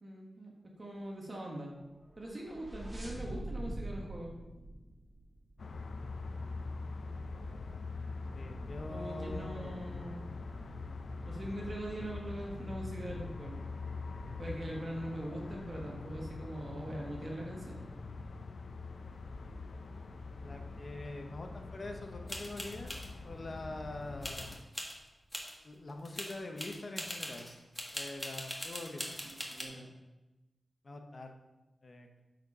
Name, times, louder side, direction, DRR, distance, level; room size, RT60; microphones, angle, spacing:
voice 1, 0.0-1.7 2.2-4.3 8.9-10.3 11.2-13.6 14.4-17.9 29.2-29.9, right 1 dB, 40° right, -1 dB, 1.4 m, -42 dB
sound 1, 2.0-5.7, right 1 dB, 25° right, 2.4 m, -43 dB
sound 2, 5.6-24.6, left 3 dB, 70° left, 0.7 m, -43 dB
voice 2, 8.3-9.9 20.4-23.0 23.2-24.6 25.6-27.5 27.9-29.2 30.8-31.3 31.8-32.2, left 2 dB, 50° left, 4 dB, 1.1 m, -44 dB
sound 3, 22.3-23.1 24.2-24.9 25.3-25.5 25.9-29.6, left 1 dB, 10° left, 1.5 m, -41 dB
8.0 x 4.5 x 5.5 m, 1.1 s
cardioid pair, 70°, 0 cm